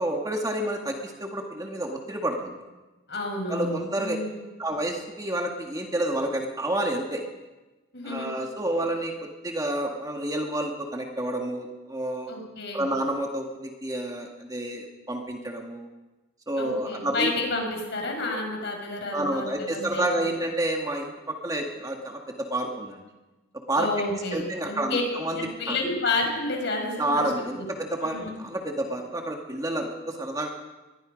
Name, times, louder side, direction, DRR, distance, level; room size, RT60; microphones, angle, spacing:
voice 1, 0.0-2.6 3.5-4.2 4.6-7.2 8.1-12.3 12.7-15.9 16.5-17.3 18.3-18.4 19.1-23.1 23.7-23.9 24.3-25.4 25.7-25.8 27.0-30.5, right 1 dB, 15° right, 2 dB, 1.9 m, -29 dB
voice 2, 3.1-4.4 7.9-8.3 12.3-12.9 16.6-20.3 23.8-25.0 25.3-27.6 28.0-28.4, left 3 dB, 55° left, 2 dB, 6.0 m, -30 dB
24.5 x 20.5 x 5.2 m, 1.1 s
head